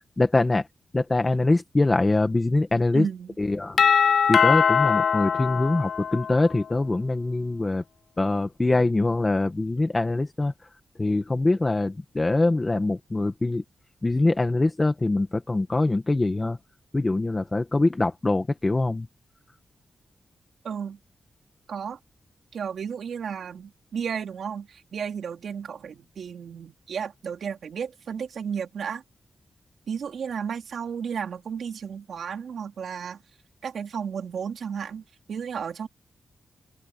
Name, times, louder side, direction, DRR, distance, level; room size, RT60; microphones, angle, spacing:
voice 1, 0.2-0.6 0.9-3.0 3.4-3.8 4.3-7.8 8.2-10.5 11.0-13.6 14.0-16.6 16.9-19.1, left 2 dB, 20° left, 1.4 m, -23 dB
voice 2, 2.9-3.3 20.6-21.0 21.7-22.0 22.5-29.0 29.9-33.2 33.6-35.9, right 7 dB, 80° right, 3.4 m, -33 dB
Doorbell, 3.8-6.6, left 7 dB, 70° left, 0.4 m, -21 dB
open air
wide cardioid pair, 125°, 0 cm